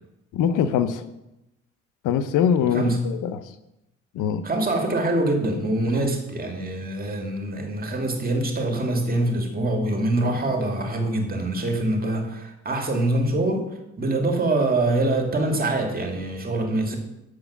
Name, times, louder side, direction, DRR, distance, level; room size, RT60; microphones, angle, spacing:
voice 1, 0.3-1.0 2.0-3.4 4.1-4.4 5.9-6.1 10.2-10.3, left 8 dB, 90° left, 12 dB, 0.7 m, -23 dB
voice 2, 2.7-3.1 4.4-17.0, right 2 dB, 30° right, 3 dB, 2.1 m, -24 dB
7.9 x 6.2 x 7.1 m, 0.91 s
cardioid pair, 90°, 30 cm